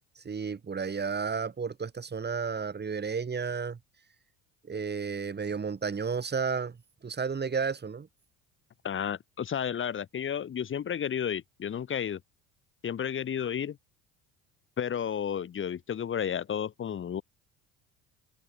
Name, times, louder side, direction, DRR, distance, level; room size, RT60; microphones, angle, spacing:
voice 1, 0.2-3.8 4.7-6.8 7.0-8.1, right 5 dB, 25° right, 2.7 m, -32 dB
voice 2, 8.8-12.2 12.8-13.8 14.8-17.2, left 8 dB, 30° left, 1.0 m, -32 dB
hypercardioid pair, 65°, 41 cm